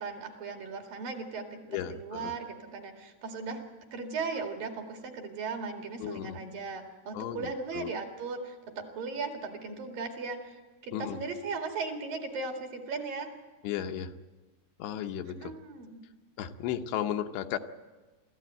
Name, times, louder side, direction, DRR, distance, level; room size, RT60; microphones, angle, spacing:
voice 1, 0.0-3.6 3.9-10.6 10.8-13.3 15.4-15.9, right 4 dB, 60° right, 3 dB, 3.6 m, -37 dB
voice 2, 1.7-2.3 6.0-6.4 7.1-7.9 10.9-11.2 13.6-14.2 14.8-15.5 16.4-17.6, left 10 dB, 85° left, 7 dB, 3.1 m, -35 dB
27.0 x 14.0 x 9.0 m, 1.3 s
omnidirectional pair, 4.9 m